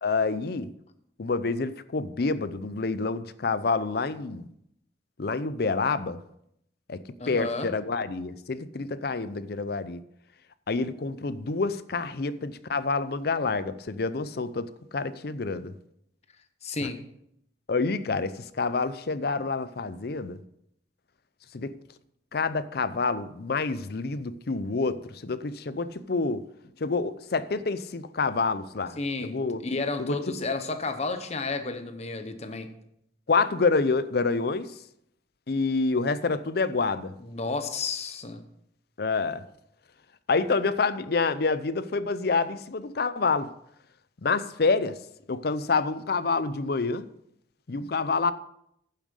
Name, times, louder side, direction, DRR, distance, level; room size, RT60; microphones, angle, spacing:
voice 1, 0.0-0.7 1.2-4.5 5.2-6.2 6.9-7.0 7.3-10.0 10.7-15.7 17.7-20.4 21.5-21.7 22.3-26.4 26.8-29.6 30.0-30.4 33.3-34.7 35.5-37.1 39.0-39.4 40.3-43.5 44.2-45.0 45.3-47.1 47.7-48.3, left 4 dB, 60° left, 14 dB, 0.6 m, -27 dB
voice 2, 7.2-7.7 16.6-17.0 29.0-32.7 37.2-38.4, left 3 dB, 35° left, 8 dB, 1.0 m, -32 dB
9.9 x 7.3 x 5.5 m, 0.75 s
head